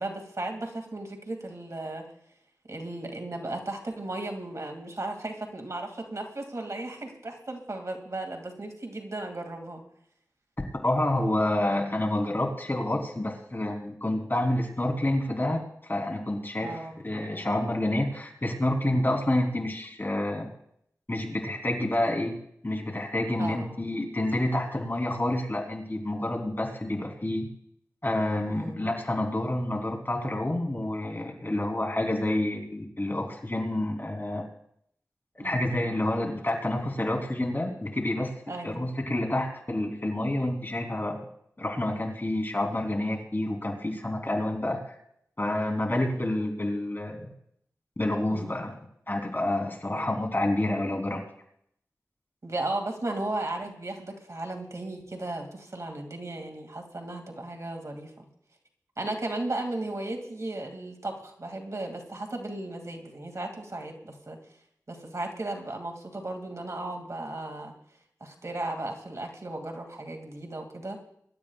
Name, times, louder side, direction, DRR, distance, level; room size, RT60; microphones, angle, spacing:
voice 1, 0.0-2.1 2.7-9.8 16.6-16.9 23.4-23.8 28.4-28.8 35.4-35.7 38.5-38.9 48.3-48.6 49.9-50.2 52.4-58.3 59.0-64.4 64.9-67.7 68.2-71.0, right 2 dB, 55° right, 3 dB, 2.3 m, -35 dB
voice 2, 10.8-20.5 21.1-22.4 22.6-27.5 28.0-34.5 35.4-38.3 38.6-41.2 41.6-44.9 45.4-47.3 48.0-48.7 49.1-51.2, left 1 dB, 35° left, 2 dB, 3.4 m, -28 dB
24.0 x 12.5 x 2.4 m, 0.70 s
cardioid pair, 40°, 6 cm